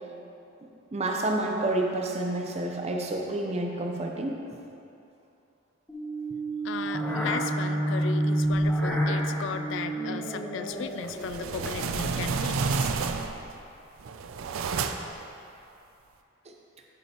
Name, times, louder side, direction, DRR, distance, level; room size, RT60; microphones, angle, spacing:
voice 1, 0.9-4.4, right 2 dB, 30° right, 1 dB, 0.6 m, -29 dB
sound 1, 5.9-12.3, right 1 dB, 10° left, 0.9 m, -29 dB
voice 2, 6.6-12.9, left 6 dB, 60° left, 10 dB, 0.3 m, -36 dB
sound 2, 11.0-13.5 14.0-15.2, right 5 dB, 85° right, 0.4 m, -30 dB
10.0 x 5.5 x 2.9 m, 2.8 s
head